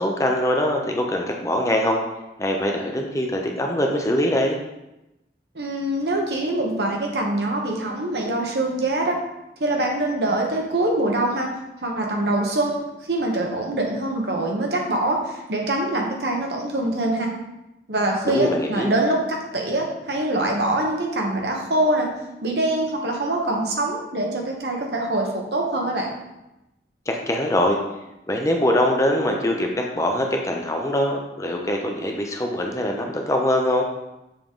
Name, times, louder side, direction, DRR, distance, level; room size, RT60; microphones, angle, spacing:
voice 1, 0.0-2.0 2.4-4.6 18.3-18.9 27.1-27.8 28.3-33.8, left 1 dB, 15° left, 2 dB, 0.6 m, -23 dB
voice 2, 5.5-9.2 9.6-11.5 11.8-12.8 13.1-17.3 17.9-22.1 22.4-26.1, right 1 dB, 70° right, 0 dB, 1.1 m, -24 dB
6.8 x 3.7 x 3.7 m, 0.94 s
head